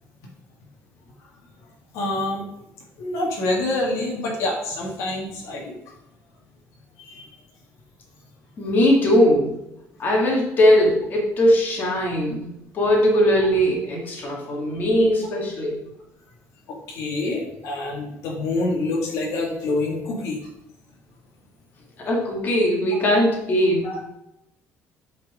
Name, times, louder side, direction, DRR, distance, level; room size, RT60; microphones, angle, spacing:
voice 1, 1.9-2.4 3.0-5.6 7.0-7.2 16.9-20.4 23.8-24.0, left 2 dB, 70° left, -1 dB, 1.9 m, -26 dB
voice 2, 8.6-9.6 10.0-12.4 12.7-15.8 22.0-24.0, equal, 35° left, -2 dB, 1.9 m, -20 dB
8.5 x 4.6 x 4.8 m, 0.83 s
cardioid pair, 170°, 5 cm